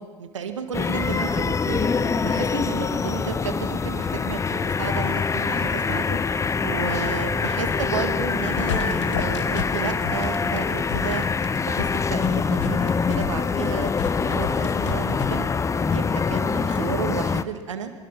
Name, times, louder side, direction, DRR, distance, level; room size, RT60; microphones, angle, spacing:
voice 1, 0.0-6.2 6.6-11.2 11.7-15.5 15.9-17.9, right 6 dB, 75° right, 7 dB, 2.1 m, -32 dB
sound 1, 0.7-17.4, left 5 dB, 20° left, 0.8 m, -24 dB
sound 2, 8.5-15.3, left 9 dB, 70° left, 1.4 m, -33 dB
25.0 x 22.0 x 5.9 m, 1.4 s
figure-of-eight pair, 70°, 16 cm